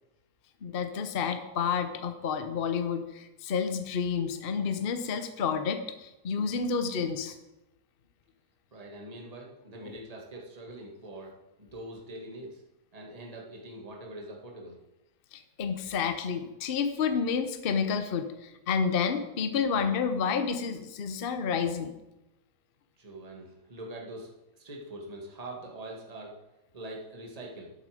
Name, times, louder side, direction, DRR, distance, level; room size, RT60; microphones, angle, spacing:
voice 1, 0.6-7.3 9.8-9.9 15.3-21.9, left 6 dB, 45° left, 8 dB, 0.9 m, -30 dB
voice 2, 8.7-12.6 12.9-14.8 23.0-26.3 26.7-27.7, right 1 dB, 25° right, -1 dB, 1.8 m, -43 dB
11.0 x 8.3 x 4.9 m, 0.95 s
omnidirectional pair, 1.6 m